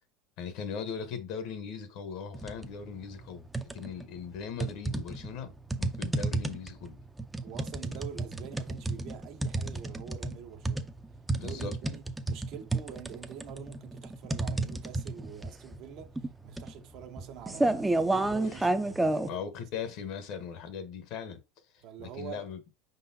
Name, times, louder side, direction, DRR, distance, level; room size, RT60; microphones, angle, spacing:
voice 1, 0.4-3.5 3.7-5.5 5.8-7.0 7.9-8.0 11.4-11.8 19.3-21.4 22.0-22.6, left 6 dB, 60° left, 1.0 m, -39 dB
sound 1, 2.3-2.7 3.1-4.0 4.6-19.3, right 2 dB, 10° right, 0.5 m, -31 dB
voice 2, 7.4-11.0 11.4-19.7 21.8-22.5, right 8 dB, 60° right, 0.9 m, -46 dB
4.9 x 3.9 x 2.7 m
supercardioid pair, 115°, 0 cm